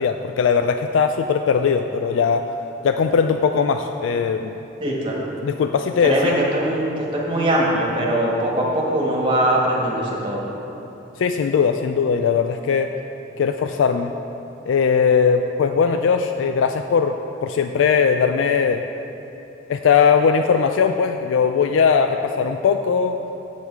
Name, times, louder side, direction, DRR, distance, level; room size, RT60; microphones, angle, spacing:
voice 1, 0.0-2.4 2.8-4.5 5.4-6.3 11.2-12.9 13.4-14.1 14.7-17.1 17.4-18.8 19.7-23.2, left 6 dB, 80° left, 7 dB, 0.3 m, -19 dB
voice 2, 4.8-5.2 6.0-10.4, right 1 dB, 25° right, -4 dB, 1.5 m, -21 dB
8.2 x 7.2 x 4.6 m, 3.0 s
head